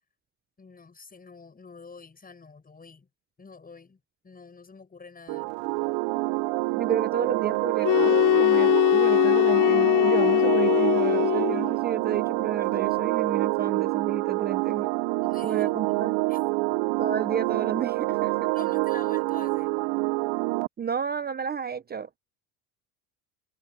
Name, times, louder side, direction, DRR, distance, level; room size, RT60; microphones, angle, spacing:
voice 1, 0.6-3.1 3.4-5.5 15.2-16.0 16.3-16.9 18.5-19.7, left 4 dB, 20° left, 6.9 m, -47 dB
sound 1, 5.3-20.7, right 25 dB, 70° right, 0.6 m, -27 dB
voice 2, 6.8-14.9 15.4-16.2 17.0-18.5 20.8-22.2, right 7 dB, 20° right, 0.7 m, -31 dB
sound 2, 7.8-11.7, left 16 dB, 65° left, 1.4 m, -21 dB
cardioid pair, 120°, 44 cm